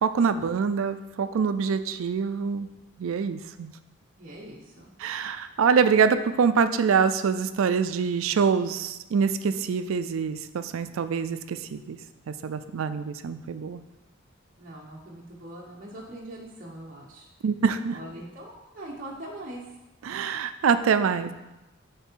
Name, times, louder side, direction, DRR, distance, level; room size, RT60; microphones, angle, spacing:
voice 1, 0.0-2.7 3.0-3.7 5.0-12.0 12.3-13.8 17.4-18.0 20.0-21.3, right 6 dB, 85° right, 11 dB, 0.4 m, -25 dB
voice 2, 4.2-4.9 14.6-17.3 17.9-19.6, right 1 dB, 40° right, -4 dB, 0.8 m, -42 dB
7.0 x 3.4 x 4.5 m, 1.0 s
head